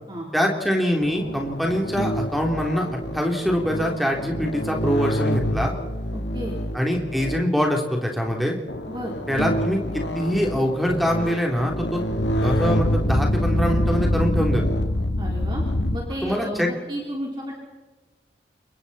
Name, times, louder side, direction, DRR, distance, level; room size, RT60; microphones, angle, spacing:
voice 1, 0.3-2.9 3.1-5.7 6.7-8.6 9.3-12.0 12.4-14.8 16.2-16.7, equal, ahead, 1 dB, 3.2 m, -24 dB
sound 1, 1.0-7.6 8.2-8.3 8.7-16.0, equal, 85° left, 2.0 m, -26 dB
voice 2, 6.1-6.6 8.9-9.1 15.2-15.6 15.9-17.5, equal, 25° right, -2 dB, 3.6 m, -32 dB
28.5 x 23.5 x 4.3 m, 1.2 s
head